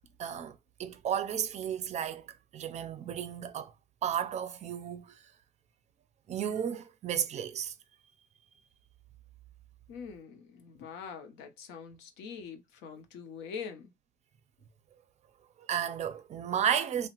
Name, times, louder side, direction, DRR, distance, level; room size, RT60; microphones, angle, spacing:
voice 1, 0.2-3.7 4.0-5.2 6.3-7.7 15.6-17.1, right 9 dB, 40° right, 0.4 m, -33 dB
voice 2, 9.9-13.9, left 6 dB, 90° left, 0.6 m, -44 dB
2.9 x 2.0 x 2.9 m
cardioid pair, 110°, 17 cm